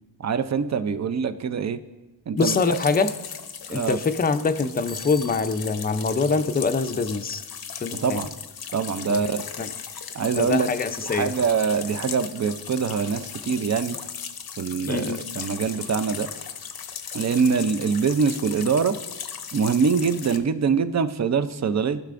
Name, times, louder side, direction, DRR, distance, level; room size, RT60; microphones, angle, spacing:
voice 1, 0.2-1.8 2.3-2.8 3.7-4.0 8.0-8.3 8.7-9.5 10.1-10.7 11.0-14.0 14.6-16.3 17.1-19.0 19.5-22.0, right 6 dB, 40° right, 12 dB, 0.5 m, -24 dB
voice 2, 2.3-3.1 3.7-7.4 7.8-8.2 9.1-9.3 9.6-9.7 10.4-11.3 14.9-15.3, left 4 dB, 25° left, 9 dB, 0.5 m, -24 dB
sound 1, 2.4-20.4, left 7 dB, 60° left, 0.7 m, -37 dB
Bicycle bell, 4.9-5.8, left 3 dB, 75° right, 2.5 m, -43 dB
15.0 x 5.8 x 2.5 m, 1.1 s
wide cardioid pair, 75°, 41 cm